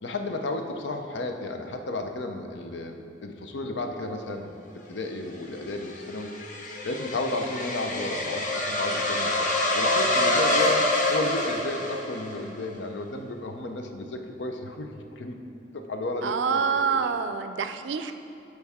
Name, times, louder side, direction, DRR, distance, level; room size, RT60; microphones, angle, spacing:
voice 1, 0.0-6.3 6.8-15.4 15.6-17.1, left 2 dB, 75° left, 5 dB, 0.7 m, -33 dB
sound 1, 5.4-12.4, left 1 dB, 45° left, 0.9 m, -26 dB
voice 2, 16.2-18.1, right 5 dB, 85° right, 9 dB, 0.4 m, -26 dB
12.5 x 4.7 x 3.6 m, 2.6 s
head